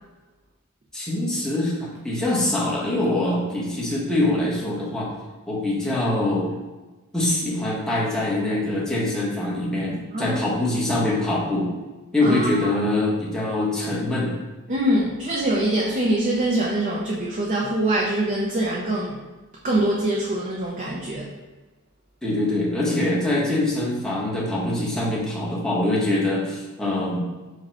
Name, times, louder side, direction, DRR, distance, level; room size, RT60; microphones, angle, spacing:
voice 1, 0.9-5.1 5.5-6.5 7.1-11.7 12.1-14.3 22.2-27.2, left 1 dB, 5° left, -6 dB, 1.0 m, -24 dB
voice 2, 12.2-12.7 14.7-19.2 19.6-21.3, right 1 dB, 35° right, -3 dB, 0.5 m, -24 dB
4.8 x 2.3 x 4.3 m, 1.2 s
head